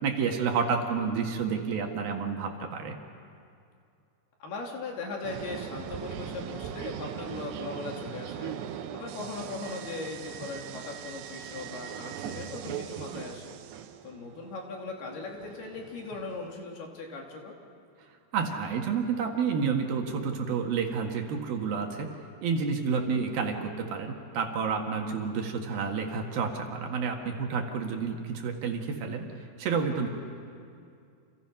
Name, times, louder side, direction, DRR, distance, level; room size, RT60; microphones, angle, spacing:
voice 1, 0.0-2.9 18.3-30.1, right 5 dB, 65° right, 2 dB, 3.3 m, -30 dB
voice 2, 4.4-13.6 14.0-17.6, left 3 dB, 70° left, 0 dB, 4.6 m, -39 dB
sound 1, 5.2-16.5, right 10 dB, 85° right, 3.2 m, -40 dB
30.0 x 28.0 x 5.8 m, 2.4 s
omnidirectional pair, 4.8 m